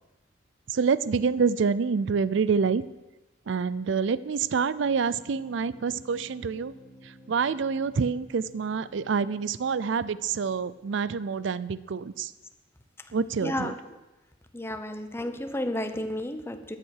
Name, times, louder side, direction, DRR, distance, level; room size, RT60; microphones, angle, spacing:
voice 1, 0.7-2.8 3.5-6.7 7.0-12.3 13.1-13.7, right 5 dB, 65° right, 18 dB, 0.4 m, -27 dB
sound 1, 4.8-11.5, equal, 5° right, 4.6 m, -53 dB
voice 2, 13.4-13.8 14.5-16.8, left 1 dB, 15° left, 8 dB, 0.9 m, -32 dB
12.5 x 8.8 x 6.5 m, 1.0 s
head